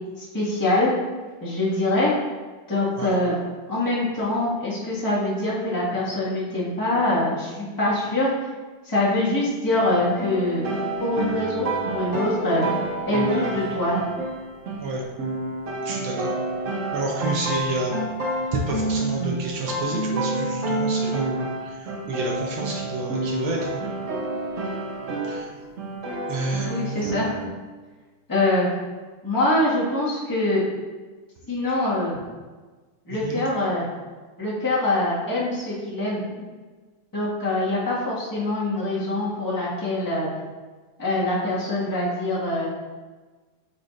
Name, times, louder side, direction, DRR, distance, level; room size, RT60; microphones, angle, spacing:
voice 1, 0.2-0.9 1.4-2.1 2.7-3.4 3.7-8.3 8.8-10.7 11.0-12.6 13.1-14.0 26.7-27.4 28.3-28.7 29.2-30.6 31.5-32.1 33.1-33.9 34.4-36.2 37.1-40.3 41.0-42.7, left 2 dB, 10° left, -8 dB, 1.4 m, -24 dB
sound 1, 9.7-25.5 25.8-27.4, right 2 dB, 55° right, 0.9 m, -29 dB
voice 2, 15.8-16.3 16.9-17.9 18.5-23.8 25.3-25.5 26.3-27.1 33.1-33.4, right 2 dB, 75° right, -1 dB, 1.6 m, -29 dB
8.0 x 4.9 x 2.5 m, 1.4 s
omnidirectional pair, 2.3 m